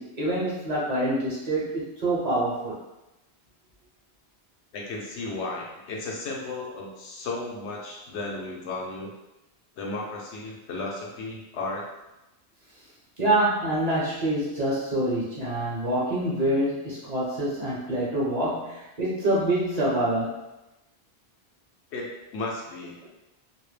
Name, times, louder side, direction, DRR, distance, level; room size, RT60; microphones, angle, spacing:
voice 1, 0.0-2.8 13.2-20.4 23.0-23.1, right 1 dB, 45° right, -7 dB, 0.7 m, -26 dB
voice 2, 4.7-9.1 9.7-11.9 21.9-23.0, left 2 dB, 85° left, -1 dB, 0.9 m, -34 dB
2.3 x 2.0 x 3.1 m, 0.97 s
omnidirectional pair, 1.1 m